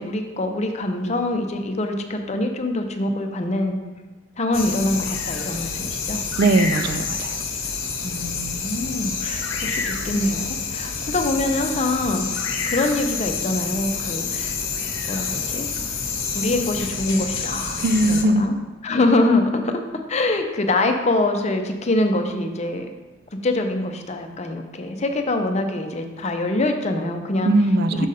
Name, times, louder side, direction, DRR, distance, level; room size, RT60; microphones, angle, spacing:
voice 1, 0.0-3.8 4.4-6.2 8.0-14.6 15.1-15.7 16.3-18.6 18.8-19.8 20.1-22.9 23.4-27.5 27.9-28.1, left 2 dB, 35° left, 5 dB, 0.6 m, -24 dB
sound 1, 4.5-18.2, left 5 dB, 90° left, 0.9 m, -28 dB
voice 2, 6.4-7.4 17.8-18.5 27.4-28.1, right 2 dB, 50° right, 10 dB, 0.4 m, -19 dB
6.3 x 5.1 x 4.1 m, 1.2 s
head